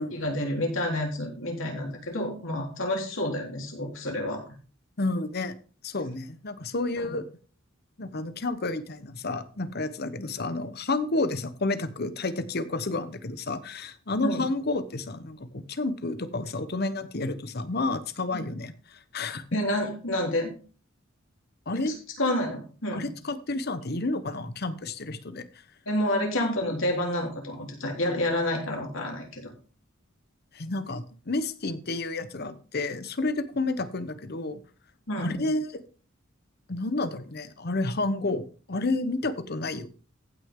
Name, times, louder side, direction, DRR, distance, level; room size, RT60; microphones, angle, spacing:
voice 1, 0.1-4.4 7.0-7.1 14.2-14.4 18.3-18.5 19.5-20.5 21.7-23.1 25.9-29.5 35.1-35.4, left 1 dB, 70° left, 0 dB, 3.6 m, -29 dB
voice 2, 5.0-5.5 5.8-7.2 8.0-19.4 21.7-21.9 22.9-25.4 30.5-34.6 35.2-35.8 36.7-39.9, left 2 dB, 50° left, 12 dB, 1.0 m, -30 dB
15.5 x 6.2 x 3.7 m, 0.38 s
head